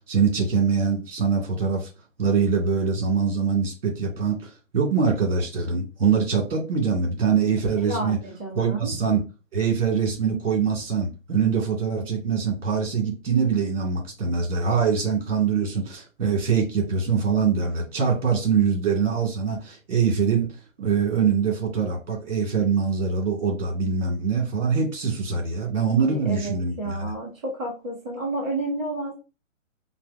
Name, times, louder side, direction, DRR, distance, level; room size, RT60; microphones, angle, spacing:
voice 1, 0.1-1.9 2.2-8.2 8.6-9.2 9.5-20.5 20.8-27.1, right 6 dB, 45° right, 2.0 m, -23 dB
voice 2, 7.8-8.9 26.0-29.1, right 2 dB, 5° right, 0.6 m, -31 dB
5.4 x 2.3 x 2.6 m
hypercardioid pair, 160°, 40 cm